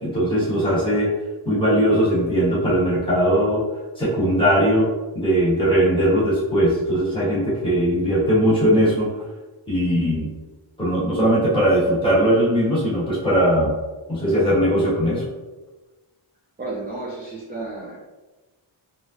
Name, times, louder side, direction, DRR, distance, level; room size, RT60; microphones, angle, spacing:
voice 1, 0.0-1.1 1.4-3.6 4.0-4.9 5.1-9.1 9.7-10.3 10.8-13.7 14.1-15.2, equal, 10° left, -9 dB, 1.2 m, -19 dB
voice 2, 16.6-18.0, right 2 dB, 20° right, -5 dB, 0.4 m, -32 dB
3.2 x 2.8 x 2.4 m, 1.2 s
wide cardioid pair, 155°, 49 cm